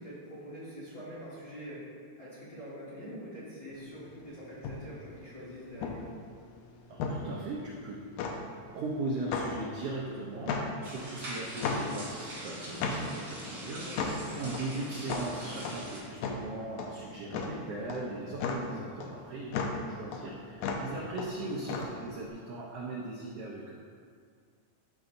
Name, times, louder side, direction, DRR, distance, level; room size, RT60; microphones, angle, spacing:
voice 1, 0.0-1.8 2.2-6.1 13.8-14.4 21.4-21.5, equal, 35° left, -10 dB, 1.8 m, -45 dB
sound 1, 3.7-22.3, left 4 dB, 80° left, 2.0 m, -36 dB
voice 2, 6.9-8.0 8.7-23.8, right 2 dB, 75° right, -3 dB, 1.4 m, -39 dB
sound 2, 10.8-16.0, right 1 dB, 40° right, 1.6 m, -42 dB
11.5 x 5.1 x 2.6 m, 2.1 s
omnidirectional pair, 3.4 m